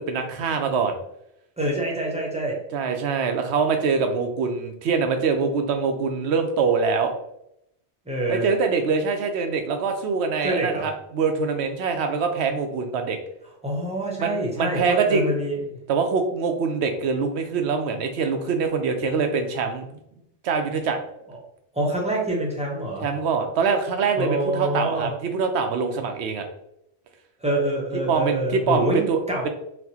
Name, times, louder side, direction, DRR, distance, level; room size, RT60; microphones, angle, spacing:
voice 1, 0.1-1.0 2.7-7.1 8.3-13.2 14.2-15.3 15.9-19.9 20.4-21.0 23.0-26.5 28.1-29.2, right 5 dB, 80° right, 6 dB, 0.9 m, -24 dB
voice 2, 1.6-2.6 8.1-8.5 10.4-10.9 13.6-15.8 21.3-21.4 21.7-23.1 24.2-25.1 27.4-29.5, right 1 dB, 5° right, -3 dB, 0.7 m, -26 dB
4.3 x 2.1 x 2.7 m, 0.77 s
omnidirectional pair, 1.1 m